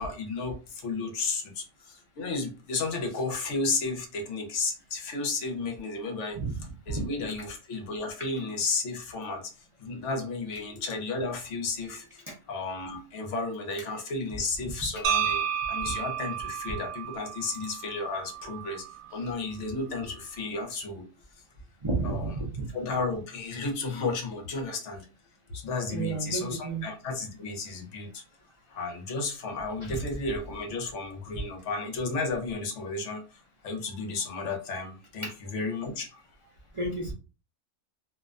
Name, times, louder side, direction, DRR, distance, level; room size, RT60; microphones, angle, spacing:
voice 1, 0.0-6.4 6.9-9.5 9.8-18.9 19.1-21.1 22.0-22.3 22.7-25.1 25.5-28.2 28.7-36.2, left 3 dB, 70° left, 3 dB, 1.0 m, -33 dB
sound 1, 15.0-19.1, right 8 dB, 90° right, 1.0 m, -32 dB
voice 2, 21.8-22.7 25.9-26.9 29.8-29.9 35.2-35.3 36.7-37.1, right 3 dB, 55° right, -4 dB, 0.3 m, -31 dB
2.6 x 2.2 x 2.4 m, 0.33 s
omnidirectional pair, 1.4 m